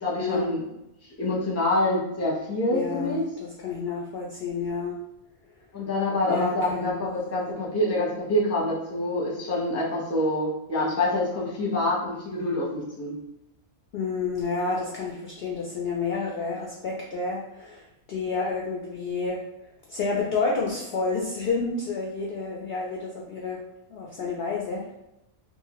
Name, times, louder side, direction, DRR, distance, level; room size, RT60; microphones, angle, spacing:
voice 1, 0.0-0.6 1.2-3.2 5.7-13.2, left 1 dB, 15° left, -5 dB, 0.5 m, -26 dB
voice 2, 2.7-5.0 6.3-7.0 13.9-17.8 18.1-19.4 19.9-23.6 23.9-24.9, left 4 dB, 75° left, -2 dB, 0.5 m, -30 dB
2.8 x 2.5 x 2.9 m, 0.88 s
omnidirectional pair, 1.6 m